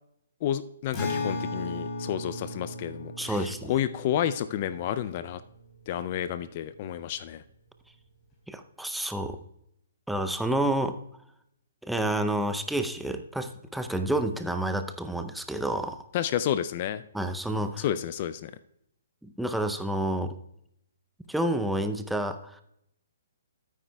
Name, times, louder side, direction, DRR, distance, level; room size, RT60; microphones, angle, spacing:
voice 1, 0.4-5.4 5.9-7.4 16.1-17.0 17.8-18.5, left 10 dB, 45° left, 14 dB, 0.4 m, -30 dB
Acoustic guitar, 0.9-6.4, left 2 dB, 25° left, 3.7 m, -37 dB
voice 2, 3.2-3.7 8.5-9.4 10.1-11.0 11.8-16.0 17.1-17.8 19.2-20.3 21.3-22.6, right 1 dB, ahead, 8 dB, 0.6 m, -29 dB
13.5 x 9.3 x 2.3 m, 0.76 s
hypercardioid pair, 135°, 0 cm